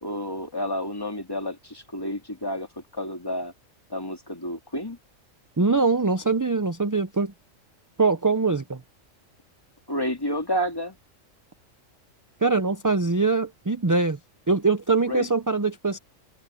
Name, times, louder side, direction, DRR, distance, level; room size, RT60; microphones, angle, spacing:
voice 1, 0.0-2.7 2.9-3.5 3.9-5.0 9.9-11.0 15.1-15.3, equal, 15° left, 2.2 m, -30 dB
voice 2, 5.6-7.3 8.0-8.8 12.4-14.2 14.5-16.0, right 3 dB, 20° right, 0.5 m, -23 dB
open air
omnidirectional pair, 1.4 m